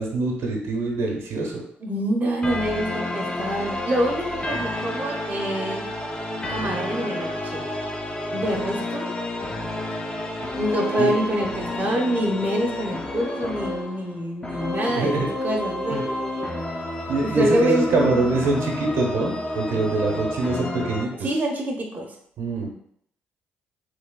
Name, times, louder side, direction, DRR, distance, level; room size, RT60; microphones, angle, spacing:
voice 1, 0.0-1.6 11.0-11.1 14.9-15.3 15.9-16.0 17.1-21.1 22.4-22.7, right 2 dB, 70° right, 0 dB, 0.9 m, -24 dB
voice 2, 1.8-5.9 6.5-7.7 8.3-9.1 10.6-16.5 17.2-18.2 19.7-19.8 21.2-22.2, right 1 dB, 35° right, 0 dB, 0.7 m, -26 dB
sound 1, 2.4-21.1, left 1 dB, 20° left, 0.6 m, -30 dB
3.3 x 3.3 x 2.2 m, 0.69 s
hypercardioid pair, 55°, 5 cm